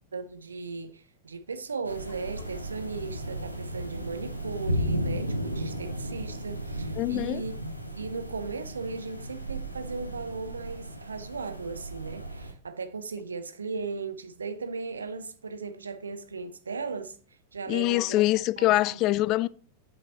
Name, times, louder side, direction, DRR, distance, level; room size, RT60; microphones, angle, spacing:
voice 1, 0.1-7.5 8.0-17.2 17.5-18.2 18.6-18.7 18.9-19.0, right 4 dB, 75° right, 0.8 m, -37 dB
sound 1, 1.8-12.5, right 1 dB, 90° right, 1.0 m, -35 dB
voice 2, 7.0-7.4 17.7-19.5, left 17 dB, 40° left, 0.3 m, -24 dB
8.5 x 8.2 x 2.9 m
figure-of-eight pair, 90°, 0 cm